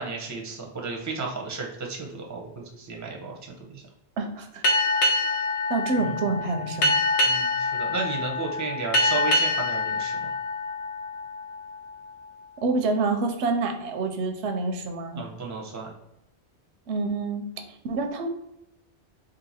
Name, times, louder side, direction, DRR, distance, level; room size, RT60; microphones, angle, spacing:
voice 1, 0.0-3.3 3.7-3.8 6.0-6.2 7.3-10.3 15.1-15.9, right 4 dB, 20° right, 0 dB, 0.5 m, -33 dB
voice 2, 4.2-4.6 5.7-6.9 12.6-15.2 16.9-18.3, right 3 dB, 85° right, 5 dB, 0.9 m, -27 dB
Boat Water vehicle, 4.6-11.7, left 2 dB, 80° left, 1.0 m, -25 dB
2.8 x 2.7 x 4.1 m, 0.84 s
omnidirectional pair, 1.1 m